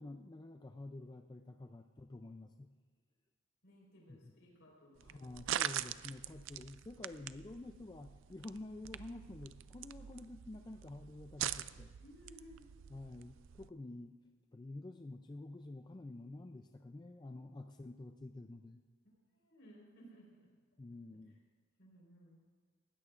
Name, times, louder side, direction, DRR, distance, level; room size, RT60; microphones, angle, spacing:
voice 1, 0.0-2.7 4.2-4.3 5.0-11.9 12.9-14.2 14.5-18.8 20.8-21.4, left 2 dB, 20° left, 5 dB, 0.4 m, -49 dB
voice 2, 3.6-5.9 12.0-12.6 19.3-20.5 21.1-21.2 21.8-22.4, equal, 65° left, -2 dB, 4.4 m, -60 dB
sound 1, 5.0-13.7, right 11 dB, 65° right, 0.4 m, -44 dB
20.0 x 16.0 x 2.5 m, 1.5 s
head